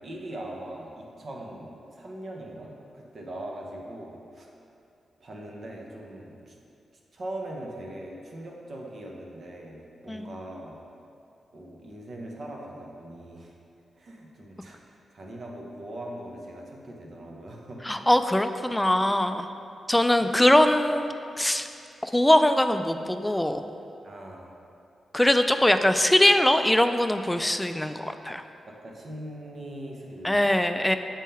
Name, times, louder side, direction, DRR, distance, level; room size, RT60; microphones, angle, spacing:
voice 1, 0.0-4.5 5.2-6.5 7.1-10.8 11.5-13.5 14.0-17.8 20.2-20.5 24.0-24.5 28.7-30.5, right 1 dB, 55° right, -1 dB, 1.0 m, -41 dB
voice 2, 17.9-19.5 19.9-21.7 22.0-23.6 25.1-28.4 30.2-31.0, left 1 dB, 10° left, 8 dB, 0.4 m, -22 dB
7.2 x 3.6 x 4.3 m, 2.6 s
cardioid pair, 55°, 0 cm